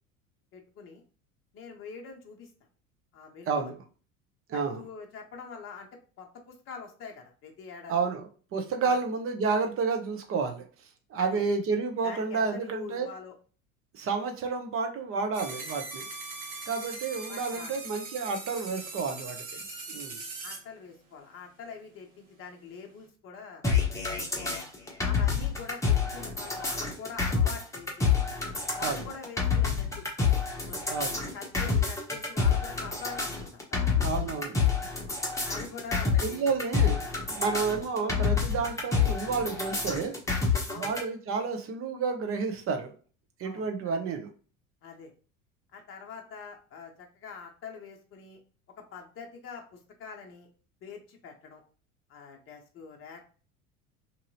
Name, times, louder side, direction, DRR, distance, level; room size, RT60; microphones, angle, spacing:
voice 1, 0.5-1.0 1.5-2.5 3.1-3.7 4.5-5.9 6.2-7.9 8.8-9.0 11.2-11.4 12.0-13.4 17.3-17.7 20.4-23.6 24.1-24.7 25.0-28.1 28.8-30.1 30.7-30.9 31.3-33.9 34.3-34.4 34.8-34.9 35.4-36.4 37.4-37.5 40.7-41.0 43.4-43.7 44.8-45.1 45.7-48.4 48.8-50.5 50.8-51.6 52.1-53.3, left 5 dB, 30° left, 2 dB, 0.7 m, -44 dB
voice 2, 4.5-4.8 7.9-10.6 11.1-13.1 13.9-16.1 16.7-19.6 19.9-20.2 28.8-29.0 30.9-31.2 31.7-31.8 34.0-34.6 36.2-40.1 40.8-42.9 43.4-44.3, right 4 dB, 30° right, 5 dB, 0.7 m, -30 dB
sound 1, 15.3-20.6, right 3 dB, 70° right, 1.1 m, -40 dB
sound 2, 23.6-41.0, left 5 dB, 5° left, 0.9 m, -28 dB
2.9 x 2.7 x 2.6 m, 0.38 s
figure-of-eight pair, 75°, 43 cm